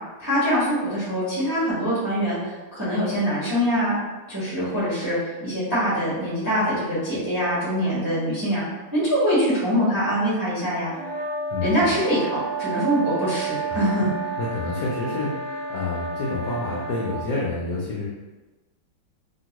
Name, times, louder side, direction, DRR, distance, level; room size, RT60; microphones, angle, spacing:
voice 1, 0.2-2.4 2.7-3.9 4.3-8.6 8.9-10.9 11.6-14.1, equal, 20° right, -10 dB, 0.6 m, -23 dB
sound 1, 11.0-17.2, right 3 dB, 80° right, 0.6 m, -31 dB
voice 2, 11.5-11.9 13.7-13.8 14.4-18.1, left 2 dB, 75° left, -5 dB, 0.9 m, -29 dB
2.9 x 2.9 x 2.9 m, 1.2 s
omnidirectional pair, 2.4 m